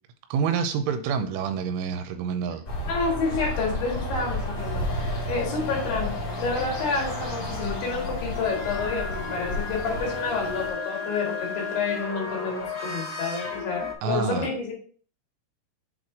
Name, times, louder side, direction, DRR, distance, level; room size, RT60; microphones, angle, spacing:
voice 1, 0.3-2.6 14.0-14.5, right 6 dB, 90° right, 8 dB, 3.1 m, -27 dB
sound 1, 2.6-10.7, left 1 dB, 40° left, 1.8 m, -32 dB
voice 2, 2.9-4.8 5.3-14.7, left 4 dB, 65° left, -1 dB, 3.5 m, -29 dB
sound 2, 4.5-13.9, left 5 dB, 85° left, 1.4 m, -35 dB
8.1 x 4.2 x 3.7 m, 0.42 s
omnidirectional pair, 5.6 m